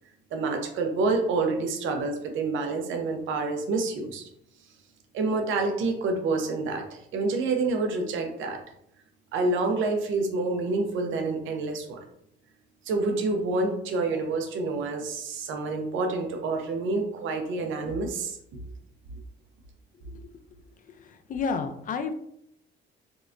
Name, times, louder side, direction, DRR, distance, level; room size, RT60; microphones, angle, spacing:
voice 1, 0.3-4.3 5.1-8.6 9.3-12.0 12.9-18.4, right 3 dB, 80° right, 3 dB, 0.6 m, -28 dB
voice 2, 21.3-22.1, left 5 dB, 45° left, 8 dB, 0.4 m, -29 dB
3.6 x 2.1 x 2.4 m, 0.73 s
cardioid pair, 90°, 20 cm